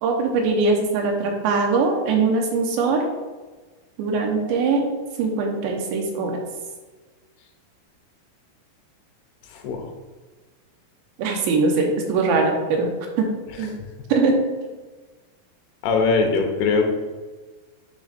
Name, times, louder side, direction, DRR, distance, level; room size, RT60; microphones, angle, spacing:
voice 1, 0.0-3.0 4.0-4.8 5.2-6.3 11.2-12.9 13.2-13.3 13.6-13.7 14.1-14.3, right 4 dB, 85° right, 1 dB, 3.3 m, -21 dB
voice 2, 15.8-16.8, left 4 dB, 80° left, 3 dB, 2.7 m, -20 dB
9.0 x 3.1 x 5.2 m, 1.3 s
omnidirectional pair, 4.9 m